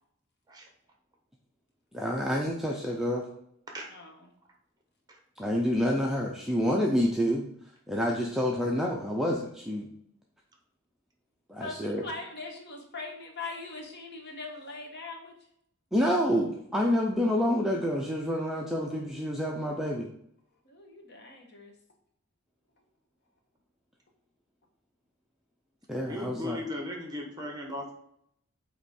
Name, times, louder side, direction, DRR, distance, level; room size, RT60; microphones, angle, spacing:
voice 1, 1.9-3.3 5.4-7.4 7.9-9.9 11.5-12.0 15.9-20.1 25.9-26.6, equal, ahead, -2 dB, 0.5 m, -28 dB
voice 2, 3.9-4.3 11.6-15.3 20.6-21.7, left 3 dB, 55° left, 3 dB, 1.1 m, -41 dB
voice 3, 26.1-27.9, left 1 dB, 20° right, 1 dB, 1.1 m, -37 dB
8.0 x 3.0 x 4.2 m, 0.72 s
head